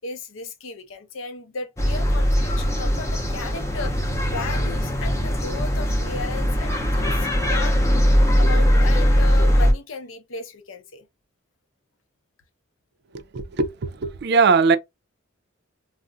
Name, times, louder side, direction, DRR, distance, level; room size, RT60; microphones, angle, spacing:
voice 1, 0.0-11.1, left 4 dB, 75° left, 0.6 m, -35 dB
sound 1, 1.8-9.7, equal, 15° left, 0.6 m, -20 dB
voice 2, 13.1-14.8, right 4 dB, 55° right, 0.4 m, -20 dB
2.4 x 2.0 x 3.7 m
head